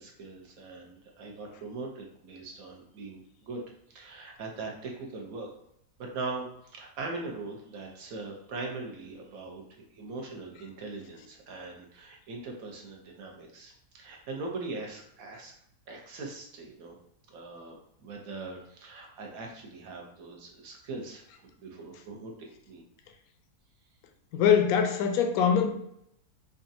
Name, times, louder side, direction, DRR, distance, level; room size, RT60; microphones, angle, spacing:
voice 1, 0.0-3.6 3.9-5.5 6.0-15.5 15.9-17.0 17.3-17.8 18.0-22.8, right 3 dB, 65° right, 0 dB, 1.2 m, -41 dB
voice 2, 24.3-25.7, left 7 dB, 70° left, 5 dB, 1.0 m, -23 dB
5.1 x 2.4 x 2.6 m, 0.72 s
omnidirectional pair, 1.7 m